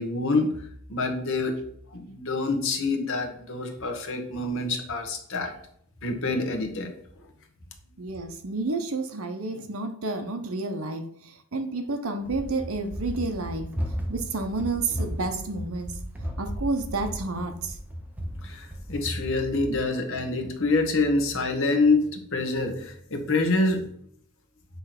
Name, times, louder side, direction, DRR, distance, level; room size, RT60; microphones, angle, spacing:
voice 1, 0.0-1.5 1.9-5.6 6.0-6.9 18.4-23.9, left 3 dB, 60° left, 4 dB, 1.3 m, -26 dB
voice 2, 8.0-13.7 14.1-15.9 16.4-17.8, right 3 dB, 70° right, 7 dB, 1.0 m, -30 dB
Run, 12.2-19.3, equal, 5° right, 0.8 m, -35 dB
8.1 x 3.3 x 5.9 m, 0.67 s
head